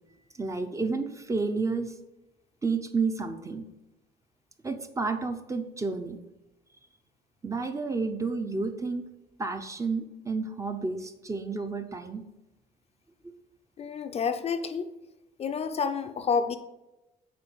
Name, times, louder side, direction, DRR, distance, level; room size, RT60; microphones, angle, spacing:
voice 1, 0.4-1.9 2.6-3.7 4.6-6.2 7.4-9.1 9.4-12.2, right 4 dB, 20° right, 7 dB, 0.6 m, -31 dB
voice 2, 13.8-14.9 15.4-16.6, left 6 dB, 40° left, 9 dB, 0.5 m, -29 dB
6.8 x 4.2 x 4.6 m, 0.97 s
cardioid pair, 110°, 17 cm